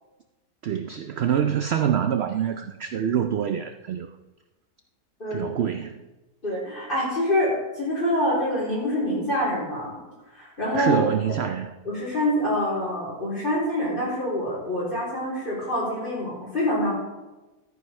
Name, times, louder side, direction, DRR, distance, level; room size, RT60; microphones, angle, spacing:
voice 1, 0.6-4.1 5.3-6.0 10.7-11.7, right 9 dB, 90° right, 9 dB, 0.5 m, -25 dB
voice 2, 5.2-5.5 6.4-9.9 10.3-11.0 11.8-16.9, left 1 dB, 30° left, -7 dB, 3.6 m, -26 dB
14.5 x 9.3 x 3.2 m, 1.1 s
omnidirectional pair, 1.7 m